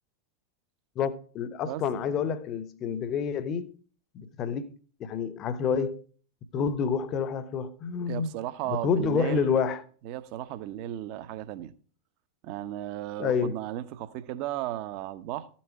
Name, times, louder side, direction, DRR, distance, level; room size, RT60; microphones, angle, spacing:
voice 1, 1.0-3.7 4.1-4.7 5.0-6.0 6.5-8.3 8.7-9.8 13.2-13.6, left 6 dB, 30° left, 1.0 m, -28 dB
voice 2, 8.1-9.5 10.0-11.7 12.4-15.5, right 13 dB, 45° right, 1.0 m, -35 dB
14.0 x 7.3 x 4.6 m
figure-of-eight pair, 90°, 0 cm